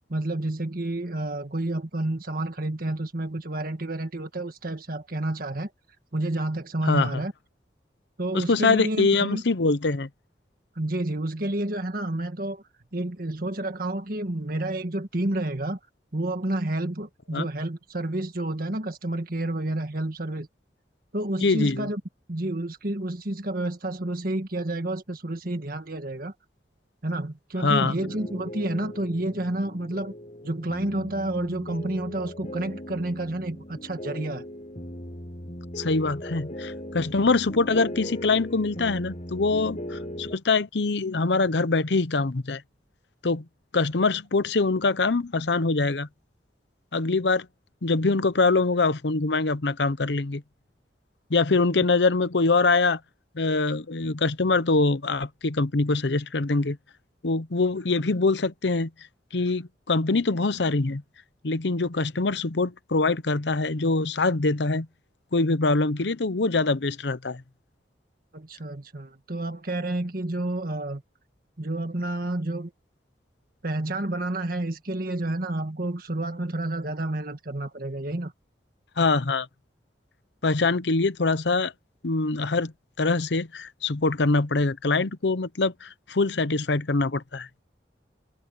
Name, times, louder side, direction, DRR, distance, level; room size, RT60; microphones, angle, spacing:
voice 1, 0.1-5.7 6.1-7.3 8.2-9.4 10.8-12.6 12.9-15.8 16.1-20.5 21.1-22.0 22.3-26.3 27.0-30.1 30.4-34.4 68.3-71.0 71.6-72.7 73.6-78.3, right 1 dB, 55° right, 1.8 m, -30 dB
voice 2, 6.9-7.2 8.3-10.1 17.3-17.5 21.4-21.9 27.6-27.9 35.8-42.6 43.2-43.4 43.7-46.1 46.9-47.5 47.8-50.4 51.3-53.0 53.3-56.8 57.2-58.9 59.3-61.0 61.4-64.9 65.3-67.4 79.0-79.5 80.4-81.7 82.0-82.7 83.0-87.5, left 3 dB, 75° left, 0.9 m, -24 dB
sound 1, 28.0-40.4, equal, 40° left, 8.0 m, -38 dB
head